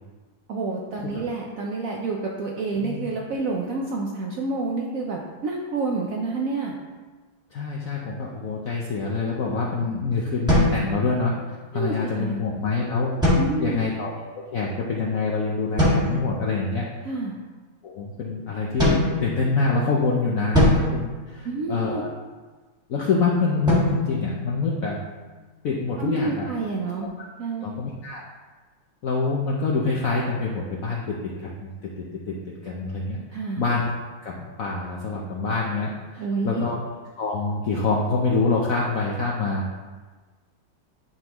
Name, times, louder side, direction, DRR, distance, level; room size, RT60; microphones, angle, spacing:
voice 1, 0.5-6.7 11.7-12.4 13.4-13.8 17.0-17.3 21.4-22.0 26.0-27.1 27.4-27.8 33.3-33.7 36.2-36.6, right 3 dB, 80° right, -1 dB, 0.7 m, -28 dB
voice 2, 7.5-11.3 11.7-13.1 13.6-16.9 17.8-22.1 22.9-25.0 25.6-26.5 27.6-28.3 29.0-31.3 31.6-33.2 33.6-33.8 34.2-36.7 37.2-39.6, left 4 dB, 65° left, -3 dB, 0.8 m, -26 dB
sound 1, 10.5-11.5 13.2-14.0 15.8-16.4 18.8-19.8 20.5-22.0 23.7-25.2, left 1 dB, ahead, 1.5 m, -24 dB
11.0 x 3.8 x 3.0 m, 1.4 s
omnidirectional pair, 2.2 m